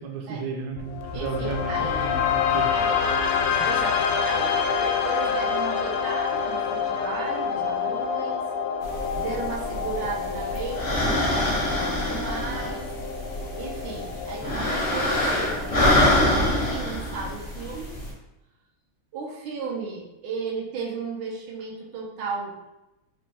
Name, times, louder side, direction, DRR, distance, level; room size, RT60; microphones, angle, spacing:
voice 1, 0.0-2.7 3.6-3.7, right 5 dB, 70° right, 0 dB, 1.3 m, -33 dB
sound 1, 0.8-16.8, left 6 dB, 80° left, 1.4 m, -27 dB
voice 2, 1.1-2.2 2.7-3.2 3.6-8.4 9.2-12.9 13.6-15.8 16.4-17.9 19.1-22.7, right 4 dB, 90° right, -2 dB, 1.6 m, -35 dB
sound 2, 8.8-18.1, left 1 dB, 65° left, 0.4 m, -26 dB
4.2 x 2.6 x 3.2 m, 0.96 s
omnidirectional pair, 2.3 m